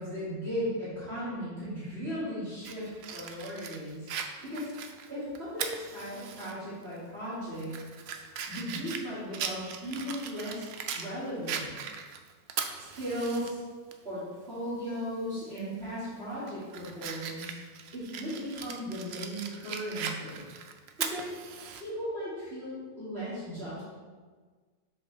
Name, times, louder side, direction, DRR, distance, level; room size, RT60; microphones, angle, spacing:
voice 1, 0.0-4.1 4.4-4.7 5.1-7.7 8.5-11.7 12.9-13.6 14.0-17.6 17.9-20.4 21.1-21.3 21.7-23.8, equal, 40° right, -12 dB, 2.4 m, -36 dB
Fire, 2.6-6.5 6.9-7.0 7.5-11.1 11.5-13.5 13.9-14.0 15.5-15.7 16.2-21.8, right 7 dB, 75° right, 0.6 m, -39 dB
7.5 x 4.7 x 3.3 m, 1.4 s
omnidirectional pair, 1.7 m